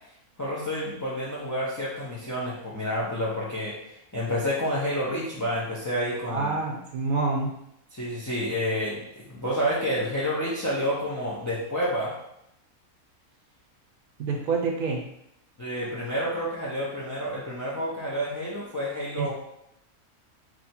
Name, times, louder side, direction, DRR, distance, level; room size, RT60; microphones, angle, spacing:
voice 1, 0.4-3.7 4.1-6.5 7.9-12.1 15.6-19.3, equal, 30° left, -7 dB, 0.3 m, -29 dB
voice 2, 6.3-7.5 14.2-15.0 19.2-19.3, right 4 dB, 80° right, 1 dB, 1.1 m, -27 dB
3.1 x 2.7 x 4.2 m, 0.78 s
omnidirectional pair, 1.5 m